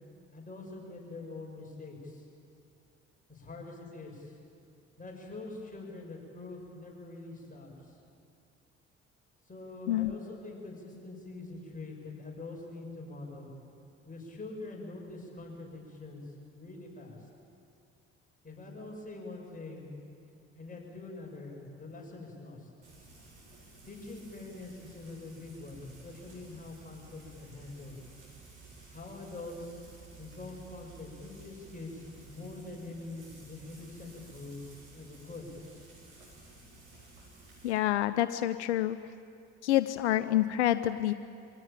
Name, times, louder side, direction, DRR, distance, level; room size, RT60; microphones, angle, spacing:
voice 1, 0.3-2.3 3.3-4.4 5.0-8.0 9.5-13.5 14.1-17.3 18.4-20.0 20.5-22.7 23.8-28.0 28.9-29.7 30.2-35.5, left 2 dB, 25° left, -1 dB, 7.2 m, -44 dB
Frying (food), 22.8-37.7, right 3 dB, 90° right, 4.9 m, -54 dB
voice 2, 37.6-39.0 39.6-41.1, left 13 dB, 85° left, 13 dB, 0.5 m, -27 dB
24.5 x 17.0 x 9.0 m, 2.5 s
hypercardioid pair, 50°, 33 cm